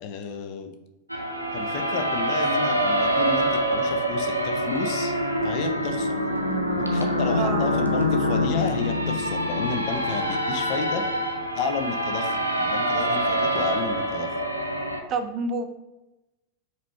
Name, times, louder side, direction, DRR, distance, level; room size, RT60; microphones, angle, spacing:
voice 1, 0.0-0.7 1.5-5.1 5.4-6.2 6.8-11.0 11.5-14.3, left 5 dB, 45° left, 6 dB, 0.5 m, -31 dB
sound 1, 1.1-15.0, equal, 90° right, 0.5 m, -25 dB
voice 2, 7.3-7.7 15.1-15.7, right 4 dB, 30° right, 7 dB, 0.5 m, -28 dB
4.9 x 3.1 x 3.2 m, 1.0 s
figure-of-eight pair, 90°, 0 cm